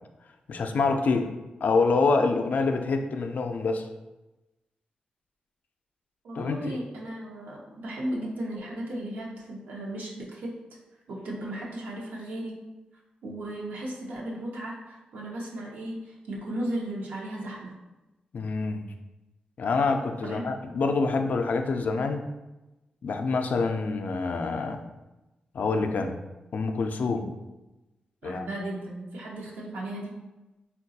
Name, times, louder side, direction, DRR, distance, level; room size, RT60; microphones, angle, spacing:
voice 1, 0.5-1.3 1.6-3.9 6.4-6.8 18.3-18.9 19.6-22.3 23.0-24.8 25.5-26.2 26.5-27.3 28.2-28.5, left 4 dB, 65° left, 5 dB, 0.3 m, -26 dB
voice 2, 6.2-10.5 11.1-12.6 13.2-17.7 20.2-20.5 27.1-27.3 28.2-30.2, right 1 dB, 80° right, -3 dB, 0.7 m, -35 dB
3.8 x 2.2 x 2.7 m, 1.0 s
cardioid pair, 55°, 3 cm